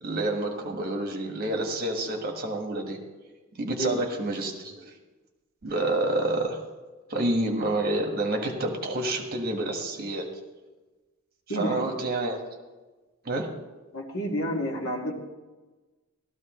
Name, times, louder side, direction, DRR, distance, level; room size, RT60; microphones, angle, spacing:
voice 1, 0.0-3.0 3.6-4.9 5.6-6.6 7.1-10.3 11.5-12.4 13.2-13.5, right 1 dB, 45° right, 3 dB, 1.5 m, -28 dB
voice 2, 11.5-11.9 13.9-15.1, equal, 65° left, 0 dB, 1.9 m, -29 dB
15.0 x 13.0 x 3.1 m, 1.2 s
head